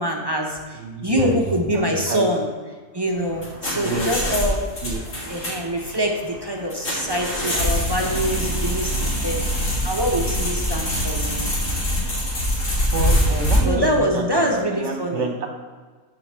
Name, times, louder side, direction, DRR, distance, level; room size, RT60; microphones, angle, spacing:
voice 1, 0.0-2.5 2.9-4.6 5.2-9.4 9.8-11.5 13.6-15.3, equal, 20° right, 0 dB, 0.7 m, -24 dB
voice 2, 0.8-1.4 1.7-2.3 3.8-4.1 4.8-5.0 12.9-14.4 14.7-15.5, right 3 dB, 60° right, 4 dB, 1.2 m, -27 dB
sound 1, 3.1-13.6, equal, 60° left, 2.4 m, -24 dB
7.7 x 5.0 x 6.2 m, 1.4 s
omnidirectional pair, 1.5 m